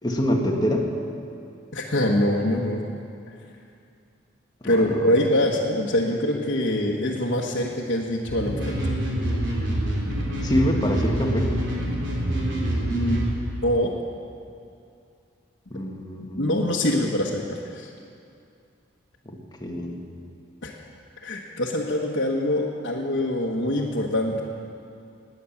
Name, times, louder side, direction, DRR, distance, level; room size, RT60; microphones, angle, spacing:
voice 1, 0.0-0.9 4.6-4.8 10.4-11.5 15.7-16.6 19.2-20.0, left 1 dB, 20° left, 1 dB, 1.6 m, -25 dB
voice 2, 1.7-2.8 4.6-8.7 12.9-13.2 13.6-13.9 16.4-17.9 20.6-20.7 21.2-24.4, left 1 dB, 60° left, -5 dB, 1.4 m, -24 dB
sound 1, 8.3-13.3, right 1 dB, 65° right, 3.7 m, -26 dB
19.0 x 9.6 x 7.3 m, 2.5 s
head